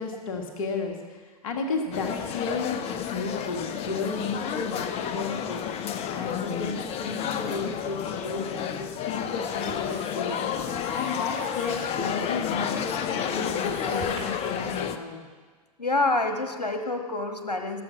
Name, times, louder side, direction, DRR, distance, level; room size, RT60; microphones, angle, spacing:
voice 1, 0.0-4.8 5.1-5.7 6.1-10.4 10.9-15.2, left 4 dB, 55° left, 3 dB, 1.9 m, -33 dB
sound 1, 1.9-15.0, left 8 dB, 30° left, 0.8 m, -31 dB
Writing, 8.1-14.2, right 3 dB, 50° right, 4.6 m, -48 dB
voice 2, 15.8-17.8, left 2 dB, 85° left, 5 dB, 1.5 m, -27 dB
18.0 x 7.1 x 6.1 m, 1.4 s
figure-of-eight pair, 100°, 20 cm